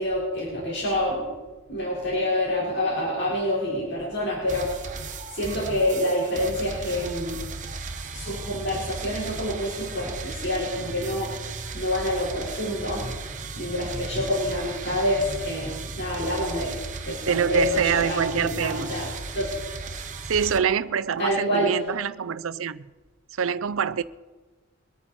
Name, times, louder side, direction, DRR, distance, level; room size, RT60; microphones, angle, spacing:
voice 1, 0.0-1.3 1.7-7.4 8.1-11.4 11.7-13.1 13.6-16.8 17.0-19.1 19.3-19.8 21.2-21.7, left 1 dB, 55° left, 4.4 m, -27 dB
sound 1, 4.5-20.6, right 3 dB, 35° right, 0.8 m, -36 dB
voice 2, 17.3-18.9 20.3-22.9 23.4-24.0, right 7 dB, 80° right, 0.5 m, -25 dB
23.0 x 8.9 x 4.3 m
head